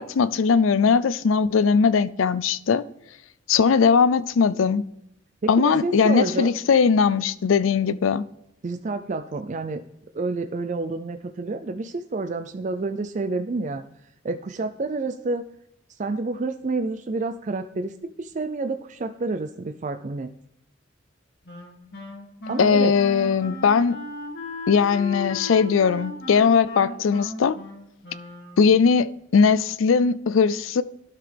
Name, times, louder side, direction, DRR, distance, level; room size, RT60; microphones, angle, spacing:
voice 1, 0.0-2.8 3.5-4.8 5.5-8.2 22.6-24.0 24.7-27.6 28.6-30.8, left 5 dB, 80° left, 0.4 m, -19 dB
voice 2, 5.4-6.5 8.6-9.8 10.1-13.8 14.2-15.5 16.0-17.9 18.2-20.3 22.5-23.0, right 3 dB, 40° right, 0.4 m, -29 dB
Wind instrument woodwind instrument, 21.5-28.9, left 1 dB, 55° left, 2.4 m, -37 dB
12.5 x 5.9 x 3.4 m
head